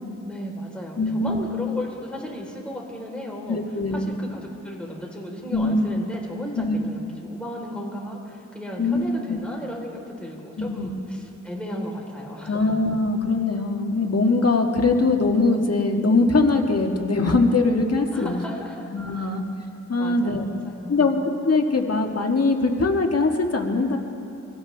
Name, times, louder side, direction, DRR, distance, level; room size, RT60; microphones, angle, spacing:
voice 1, 0.2-3.6 3.9-12.7 18.1-19.3 20.0-21.2, equal, 5° left, -2 dB, 3.8 m, -35 dB
voice 2, 1.0-1.4 3.5-4.1 5.5-6.0 6.5-6.8 8.8-9.4 10.6-10.9 12.5-18.4 18.9-19.4 19.9-20.4 20.9-21.1 21.4-24.0, left 3 dB, 55° left, 2 dB, 1.6 m, -22 dB
25.0 x 16.5 x 3.4 m, 2.9 s
wide cardioid pair, 70°, 30 cm